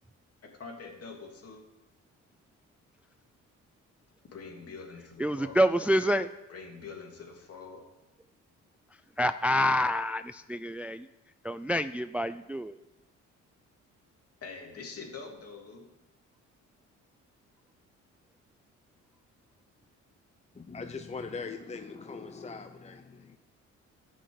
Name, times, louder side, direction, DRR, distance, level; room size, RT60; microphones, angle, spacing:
voice 1, 0.4-1.6 4.3-5.6 6.5-7.9 14.4-15.9, left 4 dB, 50° left, 1 dB, 3.1 m, -45 dB
voice 2, 5.2-6.3 9.2-11.1 11.4-12.8, equal, 5° right, 12 dB, 0.4 m, -27 dB
voice 3, 20.5-23.4, left 4 dB, 20° left, 7 dB, 0.8 m, -41 dB
13.0 x 6.4 x 8.0 m, 1.0 s
cardioid pair, 90°, 30 cm